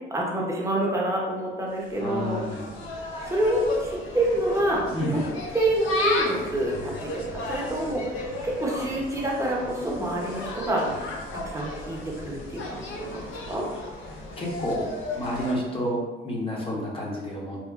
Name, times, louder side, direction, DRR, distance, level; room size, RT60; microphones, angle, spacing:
voice 1, 0.1-2.4 3.2-4.8 5.1-5.2 5.5-8.2 8.4-10.8 11.3-13.2 13.5-13.7 16.7-16.8, right 1 dB, 15° right, -3 dB, 0.6 m, -27 dB
Insect, 1.7-15.5, left 2 dB, 85° left, 0.5 m, -34 dB
voice 2, 1.9-2.7 4.9-5.2 14.4-17.6, equal, 30° left, -4 dB, 0.8 m, -30 dB
2.9 x 2.1 x 2.3 m, 1.2 s
cardioid pair, 90°, 20 cm